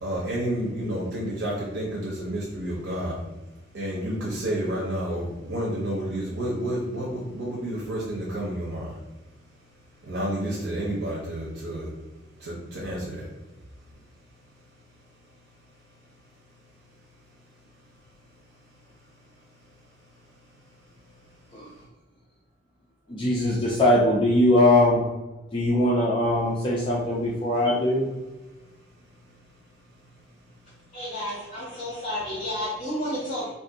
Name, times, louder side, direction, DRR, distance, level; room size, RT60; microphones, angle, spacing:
voice 1, 0.0-3.2 3.7-8.9 10.1-11.9 12.4-13.2, right 1 dB, 85° right, -5 dB, 0.7 m, -30 dB
voice 2, 23.1-25.1 25.5-28.0, left 1 dB, 25° left, -5 dB, 0.4 m, -21 dB
voice 3, 30.9-33.5, left 1 dB, 50° left, -9 dB, 1.2 m, -31 dB
2.5 x 2.5 x 3.8 m, 1.1 s
head